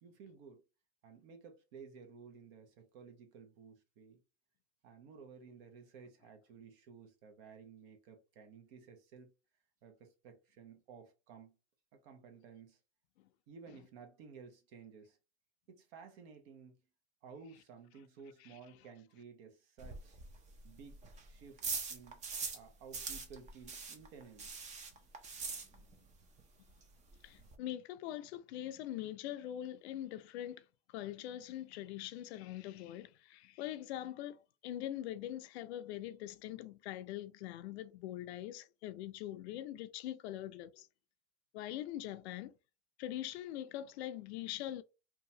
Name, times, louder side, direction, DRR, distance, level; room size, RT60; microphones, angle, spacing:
voice 1, 0.0-0.6 1.0-4.2 4.8-9.3 9.8-11.6 12.0-12.8 13.5-15.2 15.7-16.8 17.2-20.2 20.6-21.6 21.9-22.3 22.5-24.5, right 6 dB, 60° right, 0.9 m, -55 dB
sound 1, 19.8-22.7 22.9-26.1 26.4-26.5 26.8-26.9 27.1-27.6, right 5 dB, 20° right, 0.5 m, -42 dB
voice 2, 27.2-40.9 41.5-42.5 43.0-44.8, left 13 dB, 70° left, 0.5 m, -43 dB
2.8 x 2.3 x 2.7 m
supercardioid pair, 130°, 35 cm